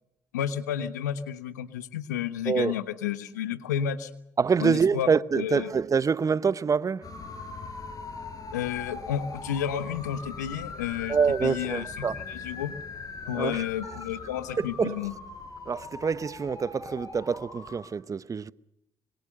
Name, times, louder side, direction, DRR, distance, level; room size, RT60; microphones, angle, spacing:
voice 1, 0.3-4.1 4.6-5.1 5.3-5.7 8.5-12.8 13.3-15.1, left 10 dB, 90° left, 1.3 m, -31 dB
voice 2, 4.4-7.1 11.1-12.2 13.3-13.6 14.6-15.0 15.7-18.5, right 5 dB, 35° right, 0.9 m, -26 dB
sound 1, 7.0-17.8, left 4 dB, 45° left, 5.4 m, -41 dB
25.5 x 23.5 x 6.6 m
hypercardioid pair, 50°, 9 cm